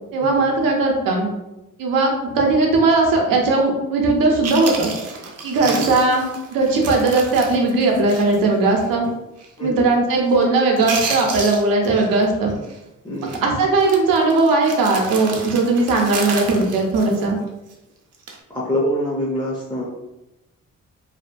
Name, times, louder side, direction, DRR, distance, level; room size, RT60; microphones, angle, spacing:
voice 1, 0.1-1.3 1.8-4.9 5.4-9.1 9.6-12.5 13.2-17.4, right 3 dB, 90° right, 0 dB, 0.7 m, -18 dB
Chewing mastication, 4.1-4.2 4.4-8.5 8.7-8.9 9.4-9.7 9.9-10.4 10.7-12.2 12.5-12.8 13.2-13.4 13.8-17.7 18.1-18.4, right 4 dB, 50° right, 0.5 m, -31 dB
voice 2, 9.6-9.9 13.0-13.4 18.5-19.9, equal, 15° left, -5 dB, 0.5 m, -25 dB
2.7 x 2.1 x 2.5 m, 0.96 s
cardioid pair, 105°, 33 cm